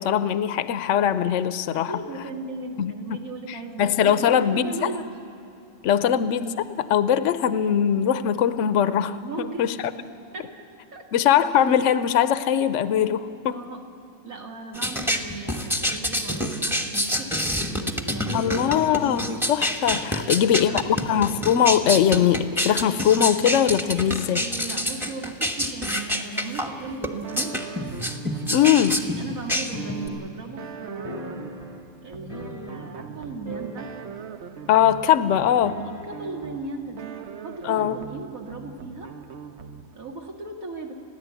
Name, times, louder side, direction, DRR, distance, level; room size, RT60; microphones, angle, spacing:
voice 1, 0.0-1.9 2.8-3.2 3.5-4.9 5.8-9.7 11.1-13.6 18.3-24.4 28.5-29.0 34.7-35.8 37.6-38.0, left 9 dB, 65° left, 12 dB, 1.0 m, -21 dB
voice 2, 1.7-5.0 9.2-9.7 10.3-10.5 10.9-11.0 13.5-13.8 14.2-18.8 20.1-21.0 24.3-27.6 29.0-31.5 32.0-33.9 35.6-39.1 39.9-40.9, right 3 dB, 90° right, 0 dB, 2.4 m, -37 dB
sound 1, 14.7-30.1, equal, ahead, 1.0 m, -27 dB
sound 2, 27.2-40.1, right 7 dB, 60° right, 0.9 m, -41 dB
sound 3, 31.0-33.2 33.4-34.5 34.7-34.8 35.6-36.4, left 1 dB, 25° right, 2.0 m, -40 dB
30.0 x 10.5 x 8.3 m, 2.7 s
omnidirectional pair, 1.4 m